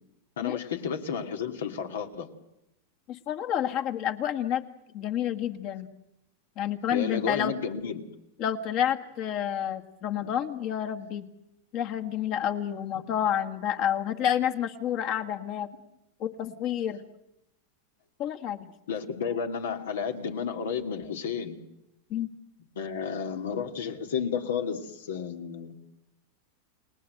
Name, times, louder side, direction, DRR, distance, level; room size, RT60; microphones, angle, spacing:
voice 1, 0.4-2.3 6.9-8.0 10.2-10.3 18.9-21.6 22.8-25.7, left 6 dB, 85° left, 6 dB, 2.5 m, -32 dB
voice 2, 3.1-4.6 4.9-5.9 6.6-7.5 8.4-11.3 11.7-15.7 16.2-17.0 18.2-18.7 22.1-22.3, left 10 dB, 50° left, 5 dB, 1.8 m, -29 dB
30.0 x 19.5 x 7.9 m, 0.86 s
hypercardioid pair, 115°, 0 cm